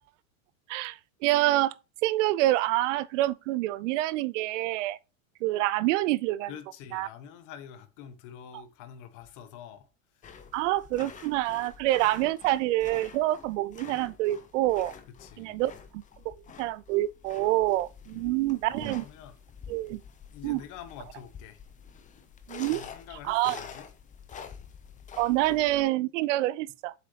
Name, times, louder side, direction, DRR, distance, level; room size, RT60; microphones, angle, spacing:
voice 1, 0.7-1.7 2.0-5.0 5.4-6.5 6.9-7.1 10.5-14.9 15.4-19.0 19.7-20.0 20.4-20.6 22.5-22.8 23.3-23.6 25.2-26.9, right 16 dB, 60° right, 0.5 m, -27 dB
voice 2, 6.5-10.3 15.2-15.6 18.1-18.4 18.9-19.4 20.3-21.6 22.6-23.9, left 9 dB, 45° left, 1.4 m, -47 dB
sound 1, 10.2-25.8, left 7 dB, 20° left, 0.8 m, -47 dB
7.8 x 6.1 x 2.8 m
supercardioid pair, 135°, 42 cm